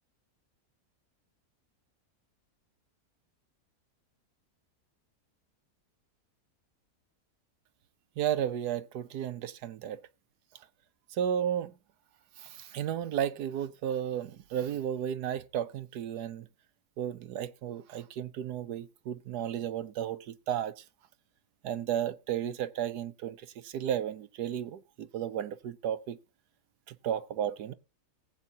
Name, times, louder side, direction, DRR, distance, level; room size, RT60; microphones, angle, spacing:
voice 1, 8.2-10.0 11.1-11.7 12.4-16.5 17.0-20.8 21.6-26.2 26.9-27.7, right 9 dB, 90° right, 1.4 m, -33 dB
19.0 x 8.3 x 2.8 m
omnidirectional pair, 1.7 m